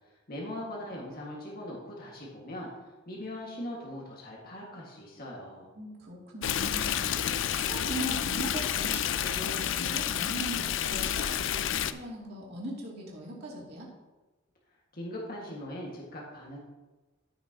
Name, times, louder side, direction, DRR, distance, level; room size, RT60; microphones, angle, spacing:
voice 1, 0.3-2.7 3.1-5.7 14.9-16.6, left 1 dB, 50° left, -3 dB, 1.8 m, -40 dB
voice 2, 5.8-7.2 7.5-13.9, right 1 dB, 55° right, -4 dB, 2.7 m, -40 dB
Stream, 6.4-11.9, left 9 dB, 65° left, 0.4 m, -30 dB
14.5 x 6.2 x 2.9 m, 1.1 s
head